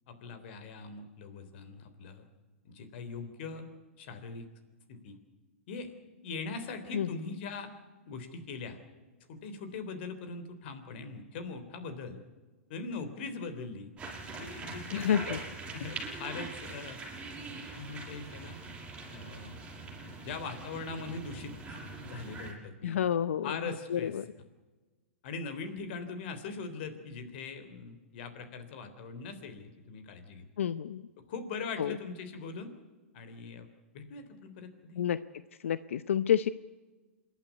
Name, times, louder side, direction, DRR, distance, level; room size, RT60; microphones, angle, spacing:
voice 1, 0.1-2.2 2.7-3.7 4.0-4.5 4.9-5.2 5.7-5.9 6.2-7.7 8.1-8.8 9.3-12.2 12.7-13.9 14.4-17.0 17.5-18.6 19.1-19.5 20.0-23.0 23.4-24.2 25.2-30.5 31.2-32.7 33.1-33.7 33.9-35.0, left 4 dB, 55° left, 9 dB, 3.5 m, -41 dB
sound 1, 14.0-22.5, right 3 dB, 15° right, 6.5 m, -43 dB
voice 2, 14.9-15.4 22.8-23.6 23.9-24.2 30.6-31.0 31.8-32.0 35.0-35.2 35.6-36.5, left 9 dB, 75° left, 15 dB, 0.7 m, -29 dB
27.0 x 11.5 x 9.5 m, 1.3 s
hypercardioid pair, 120°, 7 cm